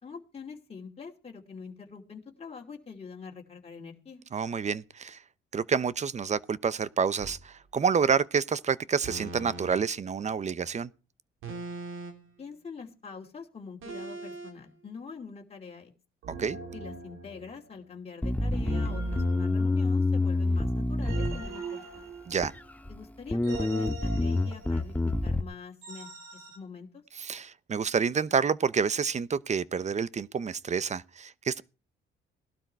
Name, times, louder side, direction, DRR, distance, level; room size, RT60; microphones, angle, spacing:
voice 1, 0.0-4.2 12.4-15.9 16.7-22.1 22.9-26.1 26.5-27.0, left 5 dB, 30° left, 2.7 m, -44 dB
voice 2, 4.3-5.2 5.5-10.9 16.4-16.6 22.3-22.5 27.2-31.6, right 6 dB, 35° right, 0.8 m, -28 dB
sound 1, 7.2-7.4 9.0-9.7 11.4-12.3 13.8-14.5 16.2-17.7 18.6-20.2 21.0-22.7 23.4-24.9 25.8-26.6, right 3 dB, 90° right, 3.7 m, -41 dB
Bass guitar, 18.2-21.8 22.4-23.0 23.3-25.4, left 2 dB, 10° left, 0.9 m, -27 dB
18.5 x 12.0 x 4.6 m
cardioid pair, 90°, 20 cm